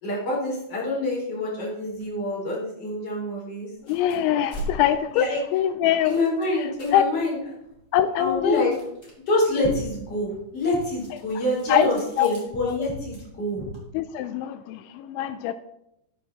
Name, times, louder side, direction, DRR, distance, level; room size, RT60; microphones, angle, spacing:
voice 1, 0.0-3.7 5.1-5.4 6.0-7.4 8.2-8.7 9.3-13.7, left 2 dB, 30° left, -4 dB, 4.8 m, -26 dB
sound 1, 3.7-13.9, equal, 5° left, 4.6 m, -44 dB
voice 2, 3.8-5.2 5.5-6.2 6.9-7.0 7.9-8.7 11.7-11.9 12.2-12.3 12.7-12.8 13.9-15.5, left 11 dB, 85° left, 11 dB, 2.7 m, -23 dB
13.0 x 9.6 x 4.2 m, 0.82 s
omnidirectional pair, 5.6 m